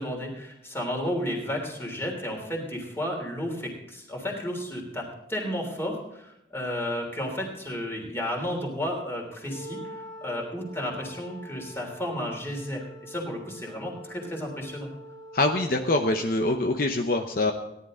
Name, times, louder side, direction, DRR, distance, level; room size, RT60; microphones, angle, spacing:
voice 1, 0.0-5.0 5.3-9.8 10.2-14.9, equal, 15° left, 1 dB, 3.2 m, -32 dB
Wind instrument woodwind instrument, 9.4-15.7, right 1 dB, 60° right, 1.7 m, -45 dB
voice 2, 15.3-17.5, left 2 dB, 55° left, 4 dB, 0.9 m, -24 dB
17.5 x 11.5 x 3.8 m, 0.86 s
head